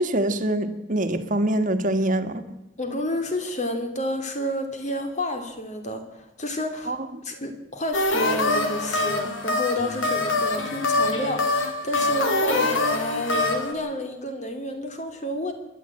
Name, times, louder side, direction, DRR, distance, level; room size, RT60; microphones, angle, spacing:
voice 1, 0.0-2.4 6.9-7.1, right 1 dB, 40° right, 9 dB, 1.6 m, -24 dB
voice 2, 2.8-15.5, left 1 dB, 40° left, 6 dB, 3.0 m, -30 dB
sound 1, 7.9-13.7, left 2 dB, 90° left, 3.0 m, -24 dB
27.5 x 11.5 x 8.8 m, 0.96 s
head